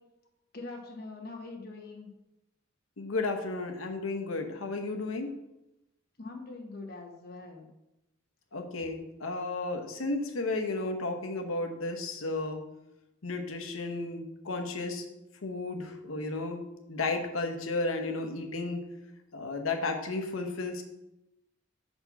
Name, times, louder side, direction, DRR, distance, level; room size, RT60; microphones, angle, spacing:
voice 1, 0.5-2.1 6.2-7.7, left 3 dB, 50° left, 1 dB, 1.2 m, -43 dB
voice 2, 3.0-5.3 8.5-12.6 13.2-15.0 15.4-16.6 16.9-18.8 19.3-20.8, left 3 dB, 90° left, 5 dB, 0.9 m, -33 dB
5.8 x 4.3 x 5.8 m, 0.92 s
head